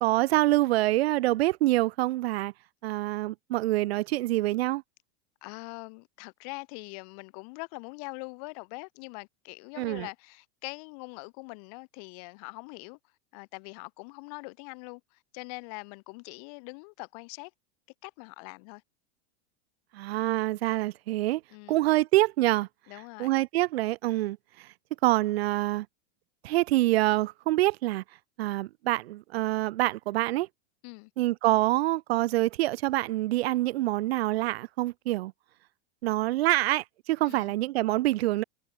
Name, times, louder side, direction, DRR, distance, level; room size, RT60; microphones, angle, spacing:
voice 1, 0.0-2.5 2.8-4.8 9.8-10.1 19.9-21.4 21.7-22.7 23.2-24.7 25.0-25.9 26.4-28.0 28.4-30.5 31.2-35.3 36.0-38.4, right 17 dB, 65° right, 0.6 m, -26 dB
voice 2, 5.4-13.0 13.3-17.5 18.0-18.8 21.5-21.8 22.9-23.3 30.8-31.1 37.3-37.5, left 34 dB, 35° left, 1.5 m, -43 dB
supercardioid pair, 180°, 33 cm